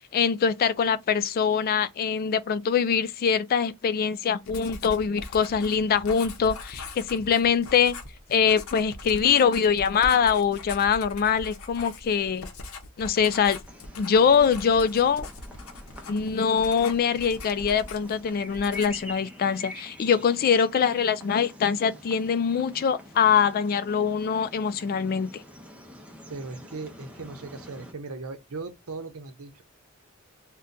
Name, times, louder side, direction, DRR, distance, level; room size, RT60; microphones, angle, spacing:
voice 1, 0.1-8.0 8.3-12.5 13.0-13.6 14.0-15.3 16.1-25.3, left 7 dB, 45° left, 0.3 m, -23 dB
Writing, 4.4-18.2 18.5-19.1, left 2 dB, 70° left, 0.7 m, -41 dB
sound 1, 13.7-27.9, left 1 dB, 5° right, 0.6 m, -46 dB
voice 2, 26.3-29.6, right 3 dB, 85° right, 0.7 m, -38 dB
2.7 x 2.2 x 3.6 m
head